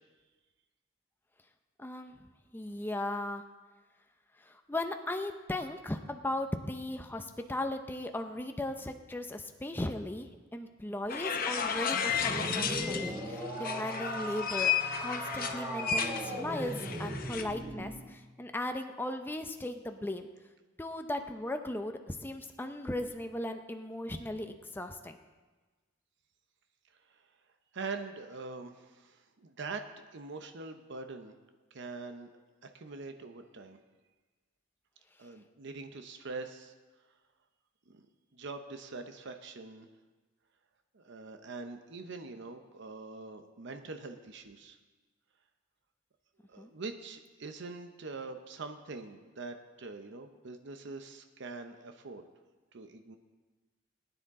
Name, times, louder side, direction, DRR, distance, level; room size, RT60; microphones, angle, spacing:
voice 1, 1.8-2.2 2.5-3.4 4.4-14.7 15.0-20.3 20.8-25.2 46.6-46.7, left 1 dB, 10° left, 6 dB, 0.5 m, -37 dB
sound 1, 11.1-13.2 13.6-17.4, left 7 dB, 45° left, 0.8 m, -33 dB
sound 2, 12.1-18.0, equal, 25° right, 2.7 m, -38 dB
voice 2, 27.7-29.9 30.1-31.3 31.7-32.3 32.6-33.8 35.2-36.7 37.9-38.1 38.3-39.9 40.9-44.8 46.5-52.2 52.7-53.2, right 3 dB, 65° right, 7 dB, 0.7 m, -43 dB
19.5 x 9.9 x 3.7 m, 1.3 s
head